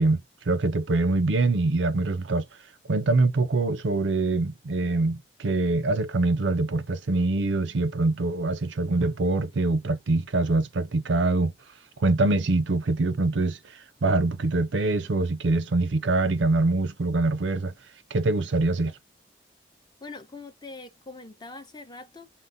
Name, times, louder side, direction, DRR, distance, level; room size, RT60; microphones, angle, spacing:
voice 1, 0.0-2.4 2.9-11.5 12.0-13.6 14.0-17.7 18.1-18.9, right 2 dB, 85° right, 0.5 m, -24 dB
voice 2, 20.0-22.3, left 3 dB, 25° left, 0.7 m, -43 dB
3.6 x 2.1 x 2.6 m
head